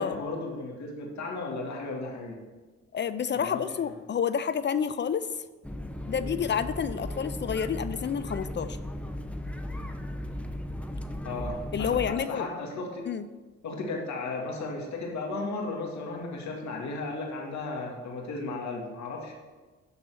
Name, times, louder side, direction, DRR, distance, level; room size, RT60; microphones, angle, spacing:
voice 1, 0.0-2.4 3.3-3.6 11.2-13.1 13.6-19.3, left 3 dB, 65° left, 0 dB, 2.2 m, -35 dB
voice 2, 2.9-5.4 6.1-8.8 11.7-12.5 13.1-13.2, left 7 dB, 40° left, 13 dB, 0.4 m, -29 dB
sound 1, 5.6-12.2, left 1 dB, 5° left, 0.7 m, -36 dB
12.0 x 4.1 x 6.2 m, 1.3 s
cardioid pair, 90°, 30 cm